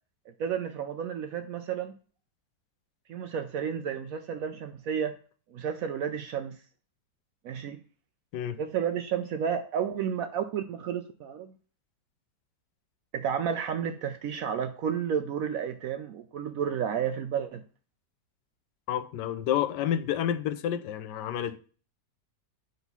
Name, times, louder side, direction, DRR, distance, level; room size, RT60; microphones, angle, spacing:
voice 1, 0.4-2.0 3.1-5.2 5.5-6.6 7.4-7.8 8.6-11.5 13.1-17.6, right 8 dB, 70° right, 0.8 m, -31 dB
voice 2, 18.9-21.6, left 10 dB, 80° left, 1.2 m, -29 dB
6.1 x 4.0 x 5.4 m
omnidirectional pair, 1.9 m